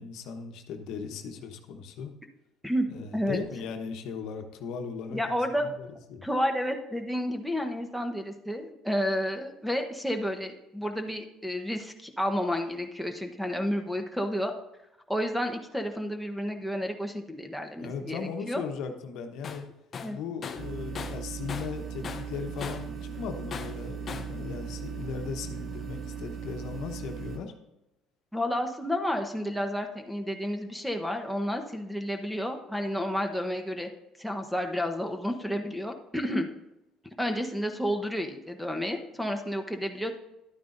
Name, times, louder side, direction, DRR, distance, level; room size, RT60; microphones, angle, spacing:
voice 1, 0.0-2.1 2.9-6.2 17.8-19.7 20.1-27.5, left 6 dB, 70° left, 5 dB, 1.0 m, -37 dB
voice 2, 3.1-3.4 5.1-5.7 6.2-14.5 15.1-18.6 19.9-20.2 28.3-33.9 34.2-36.5 37.2-40.2, equal, ahead, 5 dB, 1.0 m, -31 dB
Tools, 19.4-19.7 19.9-21.8 22.0-22.9 23.5-24.4, left 6 dB, 40° left, 0.6 m, -39 dB
sound 1, 20.5-27.4, right 7 dB, 40° right, 2.1 m, -38 dB
11.5 x 9.2 x 2.6 m, 0.94 s
supercardioid pair, 80°, 0 cm